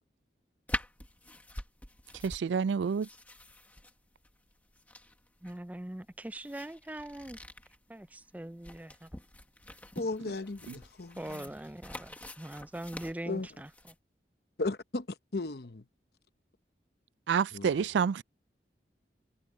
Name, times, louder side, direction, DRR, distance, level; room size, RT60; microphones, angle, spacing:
sound 1, 0.7-13.9, left 1 dB, 10° left, 1.4 m, -45 dB
voice 1, 2.2-3.1 17.3-18.2, right 6 dB, 90° right, 0.3 m, -28 dB
voice 2, 5.4-7.4 7.9-9.1 11.2-13.7, right 1 dB, 10° right, 0.4 m, -42 dB
voice 3, 10.0-11.5 13.3-13.5 14.6-15.8 17.5-17.8, left 3 dB, 65° left, 0.9 m, -36 dB
head